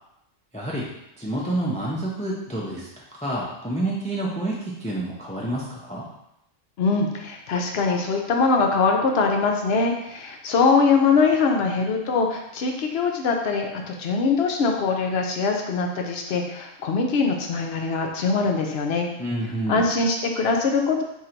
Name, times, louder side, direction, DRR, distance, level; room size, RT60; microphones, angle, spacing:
voice 1, 0.5-0.9 1.2-2.9 3.2-6.1 19.2-19.8, right 1 dB, 10° left, -4 dB, 0.4 m, -28 dB
voice 2, 6.8-19.1 19.7-21.0, left 4 dB, 65° left, 2 dB, 0.7 m, -22 dB
3.8 x 2.7 x 4.4 m, 0.83 s
omnidirectional pair, 1.3 m